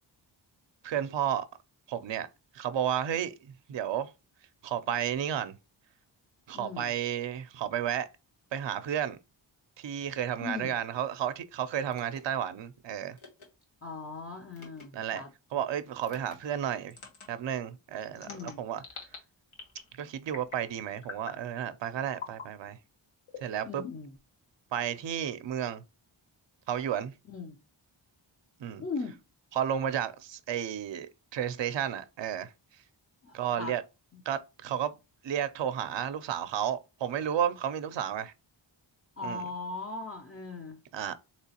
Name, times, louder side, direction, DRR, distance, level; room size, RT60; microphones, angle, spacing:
voice 1, 0.8-1.5 1.9-2.3 2.5-4.1 4.6-5.5 6.5-8.1 8.5-9.2 9.8-13.2 14.9-15.2 15.5-16.9 17.3-18.8 20.0-22.8 23.4-23.8 24.7-25.8 26.7-27.1 28.6-28.8 29.5-32.5 33.3-33.8 34.3-34.9 35.2-38.3 39.2-39.4 40.9-41.1, right 9 dB, 65° right, 0.6 m, -32 dB
voice 2, 6.5-6.9 10.4-10.7 13.8-15.3 18.2-18.6 23.6-24.2 27.3-27.6 28.8-29.2 33.2-33.7 34.1-34.2 39.2-40.8, left 3 dB, 30° left, 0.6 m, -39 dB
sound 1, 11.9-12.2 13.2-13.5 14.5-14.8 16.0-16.4 16.9-17.3 18.1-19.2 19.5-19.9 20.3-20.7 21.0-21.4 22.1-22.5 23.3-24.2, left 5 dB, 80° left, 1.3 m, -45 dB
3.7 x 3.0 x 2.8 m
wide cardioid pair, 65°, 48 cm